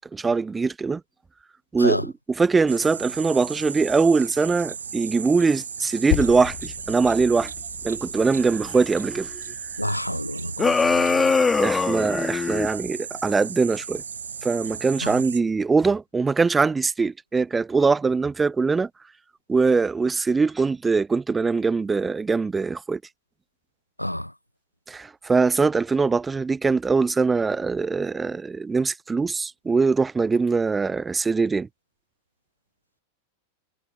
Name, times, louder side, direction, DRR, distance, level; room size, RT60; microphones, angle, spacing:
voice 1, 0.1-1.0 1.7-7.5 7.8-9.4 11.6-14.0 14.4-18.9 19.5-23.0 24.9-31.7, right 4 dB, 15° right, 0.6 m, -22 dB
sound 1, 2.7-15.4, right 6 dB, 70° right, 1.5 m, -36 dB
Percussion, 6.1-10.9, left 24 dB, 50° left, 7.4 m, -34 dB
voice 2, 9.8-11.3 15.0-15.1 24.0-24.3, left 1 dB, 90° left, 0.6 m, -29 dB
sound 2, 10.6-12.7, left 4 dB, 15° left, 2.1 m, -21 dB
figure-of-eight pair, 90°, 0 cm